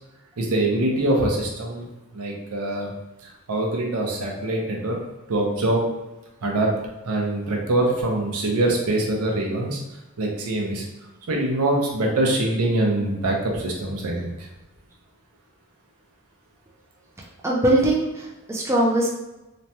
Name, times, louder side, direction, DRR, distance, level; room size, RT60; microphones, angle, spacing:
voice 1, 0.4-1.9 2.1-2.9 3.5-5.0 5.3-5.8 6.4-6.7 7.0-9.8 10.2-10.8 11.3-14.5, right 1 dB, 85° right, 0 dB, 0.6 m, -23 dB
voice 2, 17.4-19.1, right 1 dB, 10° right, -3 dB, 0.4 m, -21 dB
3.0 x 2.2 x 2.7 m, 1.0 s
head